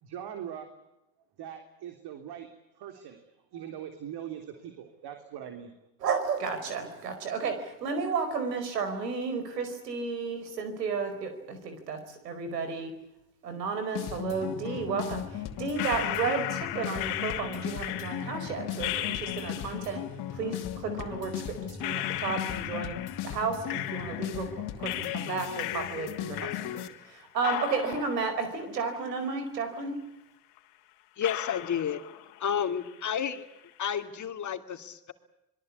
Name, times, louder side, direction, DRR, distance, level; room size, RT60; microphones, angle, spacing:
voice 1, 0.0-0.7 1.4-2.5 2.8-3.2 3.5-5.7, right 9 dB, 55° right, 6 dB, 3.6 m, -41 dB
voice 2, 6.0-12.9 13.4-20.0 20.3-23.0 23.2-30.0, right 5 dB, 90° right, 9 dB, 4.8 m, -33 dB
sound 1, 13.9-26.9, left 10 dB, 55° left, 2.9 m, -37 dB
sound 2, 15.8-19.9 21.0-21.1 21.8-24.5 24.8-27.1 27.4-29.5 29.8-29.9 30.6-30.7 31.2-32.5 32.8-33.4, left 16 dB, 70° left, 2.8 m, -37 dB
voice 3, 31.2-32.0 32.4-33.4 33.8-35.1, left 8 dB, 35° left, 8 dB, 2.7 m, -31 dB
27.0 x 22.0 x 8.6 m, 0.89 s
hypercardioid pair, 75°, 47 cm